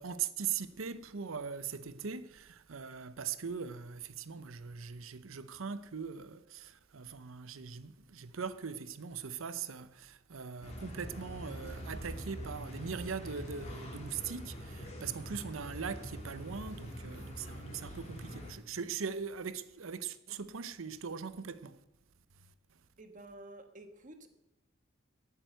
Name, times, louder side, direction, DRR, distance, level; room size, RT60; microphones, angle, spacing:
voice 1, 0.0-21.8, right 6 dB, 80° right, 0.7 m, -41 dB
sound 1, 10.6-18.5, equal, 35° left, 2.3 m, -44 dB
voice 2, 23.0-24.3, right 1 dB, 40° right, 1.4 m, -51 dB
12.5 x 8.8 x 7.9 m
head